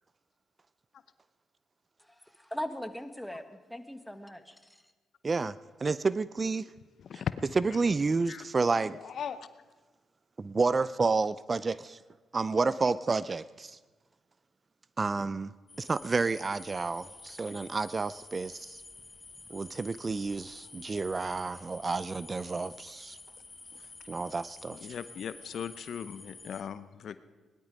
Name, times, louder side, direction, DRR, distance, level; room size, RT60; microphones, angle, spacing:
voice 1, 2.0-4.9, left 1 dB, 5° left, 8 dB, 1.5 m, -40 dB
voice 2, 5.2-5.5 5.8-6.6 7.6-9.0 10.4-12.0 12.3-13.8 15.0-15.5 15.8-18.8 19.5-23.2 24.1-24.8, right 4 dB, 35° right, 17 dB, 0.4 m, -30 dB
voice 3, 8.9-9.5 24.7-27.2, left 8 dB, 65° left, 14 dB, 0.7 m, -38 dB
sound 1, 15.7-26.6, left 3 dB, 30° left, 1.6 m, -50 dB
19.5 x 11.5 x 5.2 m, 1.3 s
supercardioid pair, 60°, 0 cm